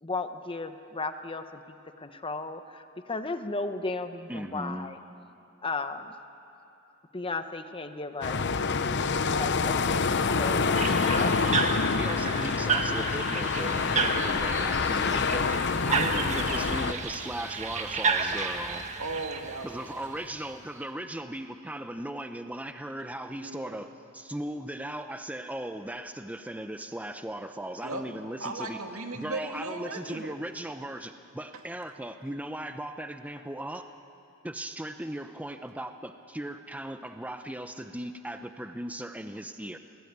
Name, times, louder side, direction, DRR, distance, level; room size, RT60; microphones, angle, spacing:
voice 1, 0.0-5.0 5.6-6.1 7.1-8.4 9.3-11.6, left 3 dB, 25° left, 8 dB, 1.0 m, -35 dB
voice 2, 4.3-4.9 12.0-15.5 15.9-18.9 19.6-28.8 29.1-33.9 34.4-39.8, right 1 dB, 5° right, 7 dB, 0.7 m, -37 dB
sound 1, 8.2-16.9, left 4 dB, 55° left, 0.8 m, -27 dB
sound 2, 10.7-20.5, right 4 dB, 35° right, 1.6 m, -32 dB
voice 3, 19.0-19.9 23.4-23.8 27.8-28.0 28.4-30.4, right 2 dB, 80° right, 4 dB, 2.3 m, -36 dB
28.5 x 20.0 x 9.5 m, 2.8 s
head